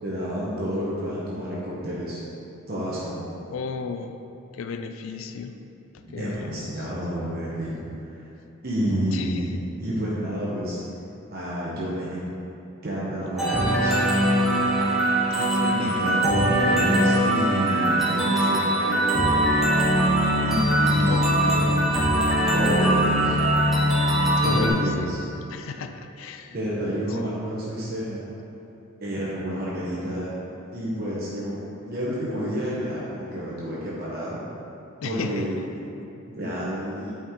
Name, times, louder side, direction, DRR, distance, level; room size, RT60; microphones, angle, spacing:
voice 1, 0.0-2.2 2.7-3.2 6.0-8.2 8.6-9.5 9.8-10.8 11.3-12.3 12.8-14.0 15.7-19.3 20.4-21.6 22.5-23.4 24.4-25.2 26.5-28.2 29.0-30.3 30.7-34.4 35.0-35.5 36.2-37.2, equal, 45° right, -7 dB, 1.0 m, -29 dB
voice 2, 3.4-4.2 4.5-5.6 6.1-6.9 9.1-9.5 15.4-16.1 21.1-21.6 24.4-25.1 25.5-26.6 27.1-27.3 35.0-35.5, left 5 dB, 75° left, 8 dB, 0.4 m, -34 dB
sound 1, 13.4-24.7, right 1 dB, ahead, 1.1 m, -21 dB
8.5 x 4.8 x 3.7 m, 2.9 s
head